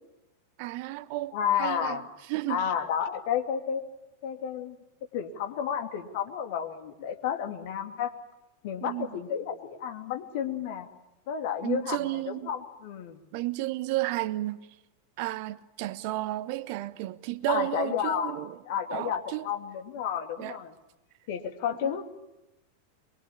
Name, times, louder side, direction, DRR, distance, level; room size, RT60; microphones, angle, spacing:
voice 1, 0.6-2.0 2.3-2.6 8.8-9.1 11.6-12.5 13.3-14.6 15.2-18.6 18.9-19.4 20.4-20.6 21.8-22.0, right 17 dB, 45° right, 1.2 m, -32 dB
voice 2, 1.3-2.0 2.5-3.8 4.2-4.8 5.1-8.1 8.6-10.9 11.3-13.2 17.5-18.3 18.6-20.7 21.3-22.0, left 8 dB, 50° left, 2.8 m, -31 dB
24.0 x 23.5 x 8.7 m
figure-of-eight pair, 90°, 0 cm